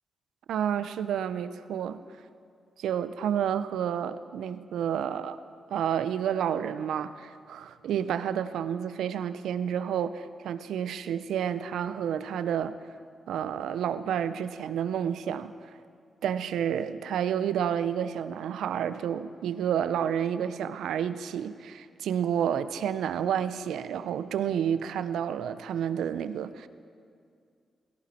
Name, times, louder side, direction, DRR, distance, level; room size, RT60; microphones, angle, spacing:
voice 1, 0.5-2.0 2.8-5.4 5.7-12.7 13.3-15.5 16.2-26.7, right 9 dB, 85° right, 13 dB, 0.5 m, -30 dB
17.0 x 14.5 x 4.3 m, 2.3 s
supercardioid pair, 50°, 0 cm